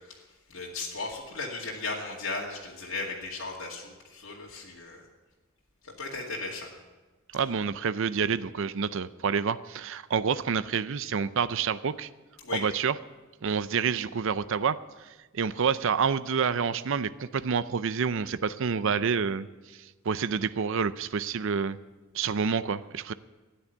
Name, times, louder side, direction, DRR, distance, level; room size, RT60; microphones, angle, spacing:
voice 1, 0.5-5.0 5.8-6.7 12.4-12.6, left 3 dB, 80° left, -4 dB, 2.2 m, -36 dB
voice 2, 7.3-12.1 12.5-13.0 13.4-19.5 19.8-21.8 22.1-23.1, right 6 dB, 65° right, 15 dB, 0.5 m, -28 dB
13.5 x 10.0 x 9.5 m, 1.2 s
head